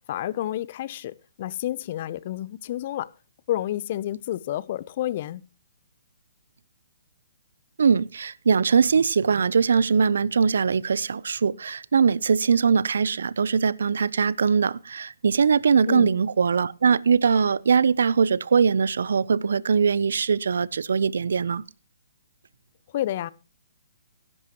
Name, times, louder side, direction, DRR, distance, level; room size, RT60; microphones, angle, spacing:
voice 1, 0.1-3.1 3.5-5.4 15.9-16.1 22.9-23.3, left 13 dB, 45° left, 0.6 m, -30 dB
voice 2, 7.8-21.6, right 6 dB, 75° right, 0.5 m, -21 dB
17.0 x 11.0 x 2.9 m
hypercardioid pair, 145°, 0 cm